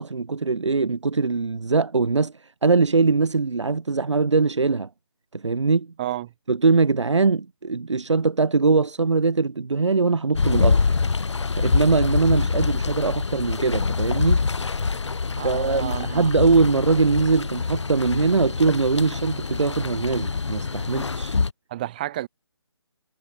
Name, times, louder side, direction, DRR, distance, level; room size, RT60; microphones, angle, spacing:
voice 1, 0.0-4.9 5.3-5.9 6.5-10.8 11.6-14.4 15.4-21.4, right 4 dB, 80° right, 1.8 m, -22 dB
sound 1, 10.3-21.5, left 4 dB, 75° left, 1.3 m, -25 dB
voice 2, 15.4-16.3 21.7-22.3, right 14 dB, 20° right, 5.7 m, -31 dB
hypercardioid pair, 175°, 15 cm